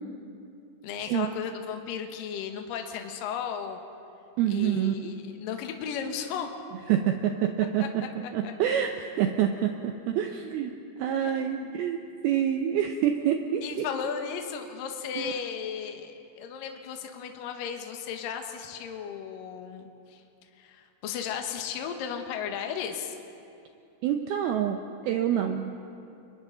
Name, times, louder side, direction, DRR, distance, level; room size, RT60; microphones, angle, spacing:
voice 1, 0.8-3.8 4.5-6.5 7.8-7.9 8.4-8.5 11.2-11.8 13.6-20.2 20.6-23.2, left 7 dB, 65° left, 4 dB, 2.4 m, -35 dB
voice 2, 4.4-5.1 6.9-7.9 8.3-10.7 11.0-12.0 12.2-13.9 15.2-15.3 24.0-25.7, right 10 dB, 85° right, 4 dB, 2.2 m, -27 dB
29.5 x 24.0 x 3.9 m, 2.7 s
omnidirectional pair, 5.4 m